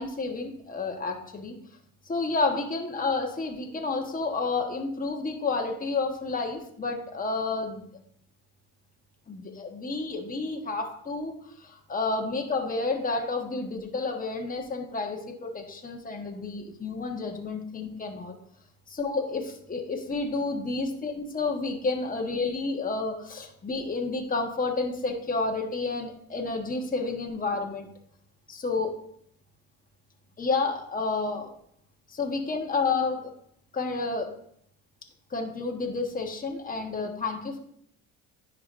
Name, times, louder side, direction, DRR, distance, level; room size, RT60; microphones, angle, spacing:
voice 1, 0.0-1.5 2.1-7.8 9.3-11.3 11.6-18.4 18.9-27.9 28.5-28.9 30.4-31.5 32.1-33.3 33.7-34.3 35.3-37.6, left 3 dB, 20° left, 1 dB, 1.2 m, -30 dB
10.0 x 4.8 x 2.5 m, 0.67 s
supercardioid pair, 80°, 37 cm